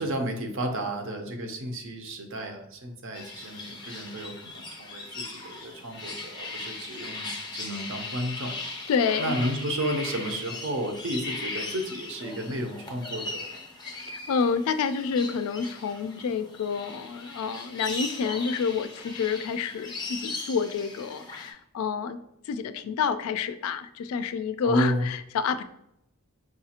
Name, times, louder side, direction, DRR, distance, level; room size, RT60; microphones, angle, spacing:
voice 1, 0.0-8.5 9.2-13.4 24.6-25.1, equal, 60° right, 4 dB, 0.6 m, -32 dB
sound 1, 3.1-21.5, left 3 dB, 20° left, 0.6 m, -38 dB
voice 2, 8.9-9.3 13.9-22.2 22.5-25.7, left 5 dB, 70° left, 12 dB, 0.3 m, -28 dB
4.7 x 2.4 x 2.8 m, 0.80 s
head